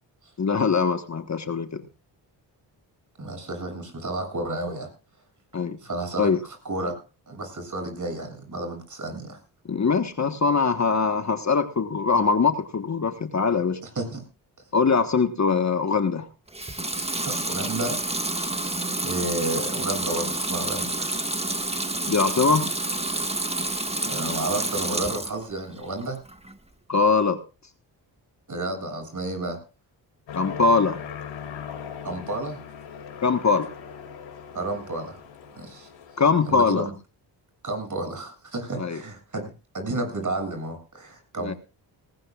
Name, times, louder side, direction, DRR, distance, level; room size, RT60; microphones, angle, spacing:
voice 1, 0.4-1.8 5.5-5.8 6.2-6.4 9.7-13.8 14.7-16.3 22.1-22.6 26.9-27.4 30.3-31.0 33.2-33.7 36.2-36.9 38.8-39.0 41.4-41.5, left 5 dB, 35° left, 9 dB, 1.4 m, -22 dB
voice 2, 3.2-4.9 5.8-7.0 7.3-9.4 14.0-14.2 17.2-18.0 18.6-18.8 19.0-21.1 24.0-26.2 28.5-29.6 32.0-32.6 34.5-35.2 35.5-35.9 36.5-36.9 37.6-41.6, right 2 dB, 40° right, 5 dB, 7.7 m, -31 dB
Water tap faucet / Sink (filling or washing) / Liquid, 16.5-25.4 25.8-26.5, right 2 dB, 15° right, 1.8 m, -29 dB
Aircraft, 30.3-36.7, left 7 dB, 80° left, 5.0 m, -39 dB
19.0 x 18.5 x 2.4 m, 0.32 s
cardioid pair, 60°, 45 cm